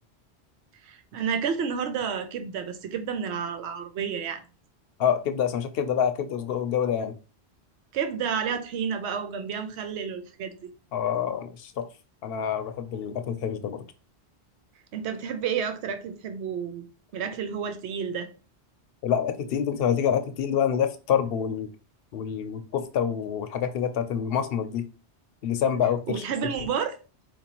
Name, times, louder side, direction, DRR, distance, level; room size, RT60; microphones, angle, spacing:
voice 1, 0.8-4.4 7.9-10.7 14.9-16.8 17.1-18.3 26.1-27.0, right 7 dB, 80° right, 0.9 m, -30 dB
voice 2, 5.0-7.1 10.9-11.9 12.2-13.8 19.0-21.7 22.1-24.8 25.4-26.2, left 8 dB, 65° left, 0.8 m, -27 dB
4.5 x 2.6 x 2.9 m
omnidirectional pair, 1.1 m